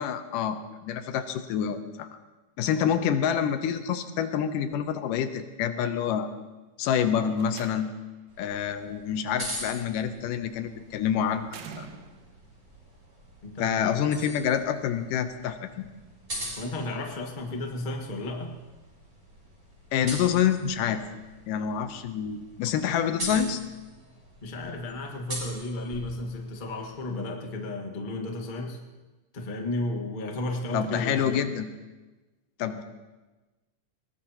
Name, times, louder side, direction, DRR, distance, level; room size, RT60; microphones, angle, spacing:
voice 1, 0.0-2.1 2.6-6.3 6.8-7.9 8.4-11.5 11.8-11.9 13.6-15.9 19.9-21.0 21.5-23.6 30.7-31.7 32.6-32.8, left 8 dB, 85° left, 9 dB, 2.4 m, -27 dB
Slam, 7.2-8.2 9.7-10.1 11.5-12.5, right 6 dB, 65° right, 1.9 m, -46 dB
sound 1, 8.3-27.1, right 1 dB, 20° right, 5.5 m, -43 dB
voice 2, 13.4-14.0 16.6-18.6 24.4-28.8 29.3-31.5, left 2 dB, 35° left, 2 dB, 0.8 m, -33 dB
21.5 x 18.5 x 2.9 m, 1.2 s
omnidirectional pair, 3.8 m